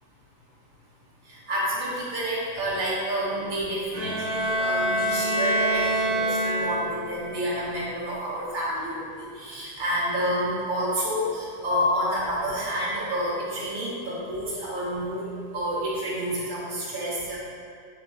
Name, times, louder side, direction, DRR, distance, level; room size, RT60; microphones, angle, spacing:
voice 1, 1.3-15.3 15.5-17.4, equal, 45° right, -7 dB, 0.6 m, -29 dB
Bowed string instrument, 3.9-7.1, right 1 dB, 65° right, 1.4 m, -25 dB
4.7 x 2.9 x 3.5 m, 2.3 s
omnidirectional pair, 2.1 m